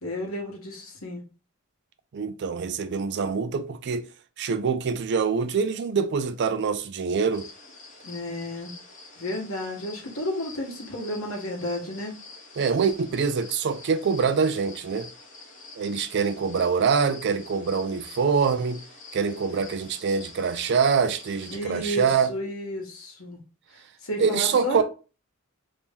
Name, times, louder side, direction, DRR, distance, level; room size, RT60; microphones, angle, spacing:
voice 1, 0.0-1.2 8.0-8.7 9.2-12.1 21.5-23.4 24.0-24.8, left 1 dB, 70° left, 1.3 m, -32 dB
voice 2, 2.1-4.1 4.4-7.5 12.6-15.1 15.8-18.8 19.1-22.3 24.2-24.8, right 5 dB, 55° right, 0.4 m, -25 dB
sound 1, 7.3-21.6, left 3 dB, 35° left, 0.8 m, -47 dB
3.0 x 2.7 x 3.6 m
head